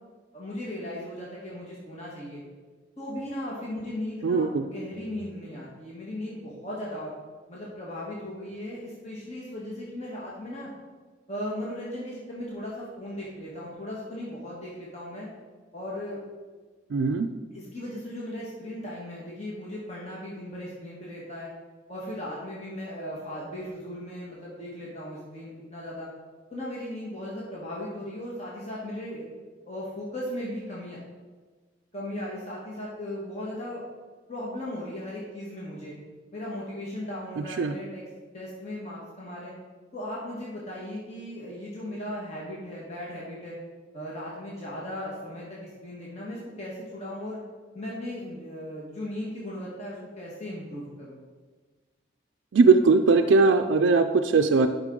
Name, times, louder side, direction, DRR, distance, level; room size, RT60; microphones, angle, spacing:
voice 1, 0.3-2.4 3.0-7.1 7.5-10.7 11.3-15.3 15.7-16.2 17.5-21.5 21.9-26.1 26.5-29.2 29.6-31.0 31.9-33.8 34.3-36.0 36.3-38.0 38.3-39.5 39.9-43.6 43.9-47.4 47.7-51.2, left 1 dB, 35° left, -6 dB, 1.5 m, -37 dB
voice 2, 4.2-4.6 16.9-17.3 37.6-37.7 52.5-54.7, right 4 dB, 70° right, 7 dB, 0.4 m, -20 dB
11.0 x 5.4 x 3.7 m, 1.4 s
head